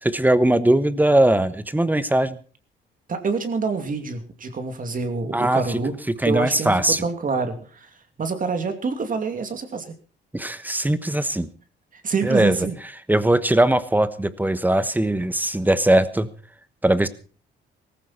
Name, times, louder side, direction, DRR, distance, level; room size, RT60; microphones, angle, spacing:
voice 1, 0.0-2.4 5.3-5.8 6.2-7.0 10.3-11.5 12.2-12.6 13.1-16.3 16.8-17.1, right 1 dB, 10° right, 14 dB, 1.2 m, -20 dB
voice 2, 3.1-5.9 6.2-7.9 8.2-9.9 12.0-12.8, right 4 dB, 45° right, 7 dB, 2.6 m, -26 dB
17.5 x 15.0 x 4.3 m, 0.39 s
cardioid pair, 90°, 20 cm